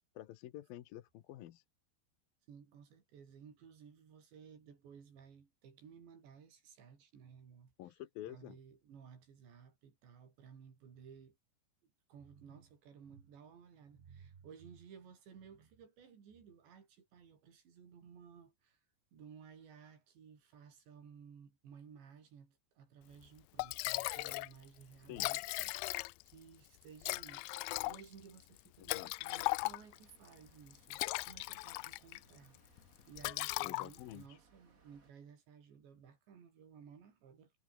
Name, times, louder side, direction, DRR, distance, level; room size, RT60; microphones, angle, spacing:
voice 1, 0.2-1.6 7.8-8.6 25.1-25.3 28.8-29.1 33.6-34.4, left 13 dB, 65° left, 2.6 m, -49 dB
voice 2, 2.5-7.7 8.3-11.4 11.8-18.8 19.1-27.5 27.9-32.6 33.1-37.5, right 7 dB, 80° right, 6.7 m, -57 dB
Liquid, 23.2-23.3 23.6-24.5 24.8-24.9 25.1-26.4 27.0-30.1 30.7-32.2 32.6-32.8 33.2-34.2, left 24 dB, 85° left, 2.8 m, -38 dB
sound 1, 29.6-35.1, right 4 dB, 30° right, 1.8 m, -69 dB
omnidirectional pair, 5.0 m